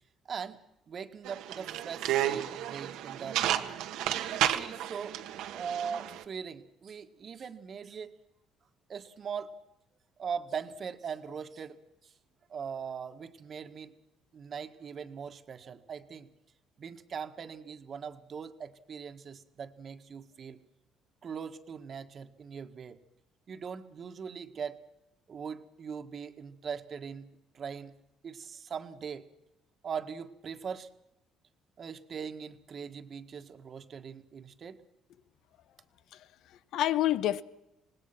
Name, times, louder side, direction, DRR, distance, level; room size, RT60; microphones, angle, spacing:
voice 1, 0.3-0.6 0.9-3.8 4.3-5.2 5.5-8.1 8.9-9.5 10.2-11.8 12.0-12.1 12.5-13.9 14.3-16.3 16.8-20.6 21.2-23.0 23.5-24.8 25.3-27.3 27.5-27.9 28.2-29.3 29.8-30.9 31.8-34.8, right 6 dB, 45° right, 1.7 m, -40 dB
sound 1, 1.2-6.2, right 12 dB, 85° right, 1.5 m, -32 dB
voice 2, 36.1-37.4, left 13 dB, 75° left, 1.0 m, -29 dB
26.0 x 19.5 x 6.0 m
cardioid pair, 100°, 0 cm